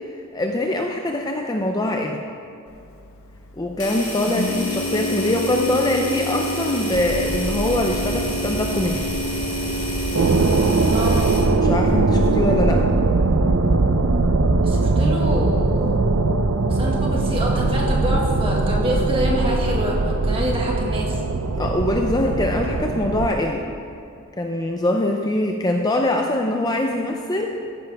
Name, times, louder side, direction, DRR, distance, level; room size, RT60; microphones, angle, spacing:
voice 1, 0.3-2.2 3.5-9.1 11.6-12.8 21.6-23.6 24.4-27.5, left 1 dB, 15° left, 2 dB, 0.5 m, -23 dB
Organ, 2.7-12.8, equal, 70° left, 0.6 m, -31 dB
sound 1, 3.8-11.5, left 1 dB, 35° left, 2.6 m, -31 dB
sound 2, 6.9-23.3, right 3 dB, 75° right, 0.6 m, -21 dB
voice 2, 10.9-11.5 14.6-16.1 16.7-21.2, equal, 25° right, -2 dB, 1.8 m, -26 dB
15.0 x 10.5 x 3.5 m, 2.6 s
head